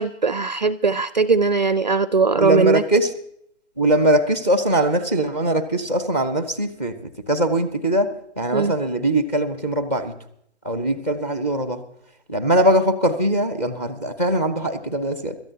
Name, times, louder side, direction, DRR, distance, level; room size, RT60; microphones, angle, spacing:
voice 1, 0.0-2.8 8.5-8.7, right 4 dB, 40° right, 16 dB, 0.4 m, -19 dB
voice 2, 2.4-3.1 3.8-10.2 10.6-11.8 12.3-15.4, right 1 dB, 10° left, 10 dB, 0.6 m, -21 dB
26.0 x 13.5 x 2.8 m, 0.70 s
figure-of-eight pair, 155°, 36 cm